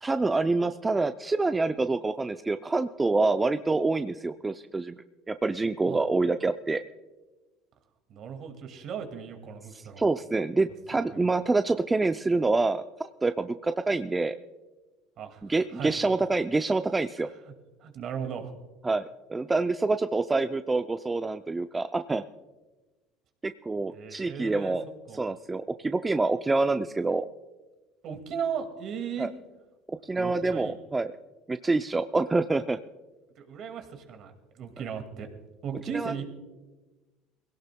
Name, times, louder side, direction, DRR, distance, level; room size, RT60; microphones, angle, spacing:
voice 1, 0.0-5.0 5.3-6.8 10.0-14.4 15.4-17.3 18.8-22.2 23.4-24.8 25.2-27.3 29.2-29.3 29.9-31.1 31.5-32.8 35.9-36.1, right 3 dB, 15° right, 9 dB, 0.4 m, -26 dB
voice 2, 8.1-10.0 11.1-11.2 15.2-15.4 15.7-16.0 17.5-17.6 17.8-18.5 23.9-24.8 25.1-25.2 28.0-29.3 30.2-30.8 33.4-35.3 35.6-36.3, right 7 dB, 55° right, 6 dB, 2.1 m, -36 dB
21.5 x 17.0 x 2.3 m, 1.2 s
supercardioid pair, 90°, 0 cm